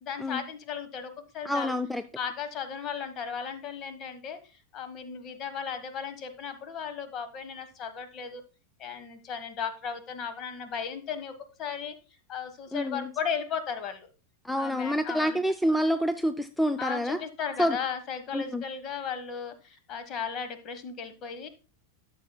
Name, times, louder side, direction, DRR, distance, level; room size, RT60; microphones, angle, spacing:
voice 1, 0.0-1.7 2.1-8.4 8.8-11.3 11.6-11.9 12.3-14.1 14.6-15.4 16.8-21.5, left 7 dB, 35° left, 10 dB, 1.2 m, -36 dB
voice 2, 1.4-2.0 12.7-13.1 14.4-17.2 17.6-17.8 18.3-18.6, equal, ahead, 10 dB, 0.4 m, -27 dB
13.5 x 6.7 x 2.2 m, 0.32 s
figure-of-eight pair, 90°, 0 cm